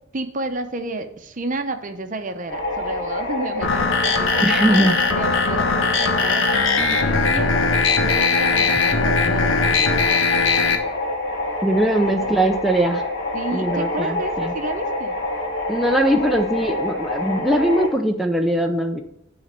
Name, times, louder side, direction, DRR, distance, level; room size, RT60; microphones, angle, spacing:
voice 1, 0.1-6.5 6.8-7.5 8.0-10.1 11.9-12.3 13.3-15.2, right 2 dB, 40° right, 7 dB, 0.8 m, -31 dB
sound 1, 2.5-17.9, left 1 dB, 55° left, 2.6 m, -27 dB
sound 2, 3.6-10.8, left 4 dB, 75° left, 1.1 m, -20 dB
voice 2, 4.4-5.0 11.6-13.0 13.5-14.5 15.7-19.0, right 1 dB, ahead, 2 dB, 0.5 m, -20 dB
10.5 x 4.0 x 6.6 m, 0.82 s
head